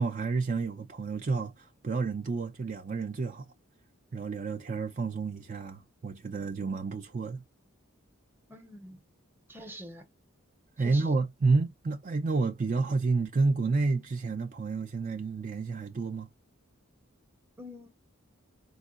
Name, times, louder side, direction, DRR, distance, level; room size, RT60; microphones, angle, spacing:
voice 1, 0.0-3.5 4.1-7.4 10.8-16.3, right 4 dB, 35° right, 0.4 m, -30 dB
voice 2, 8.5-9.0 9.5-10.0 10.8-11.2 17.6-17.9, equal, 10° right, 0.7 m, -45 dB
4.7 x 2.2 x 2.3 m
head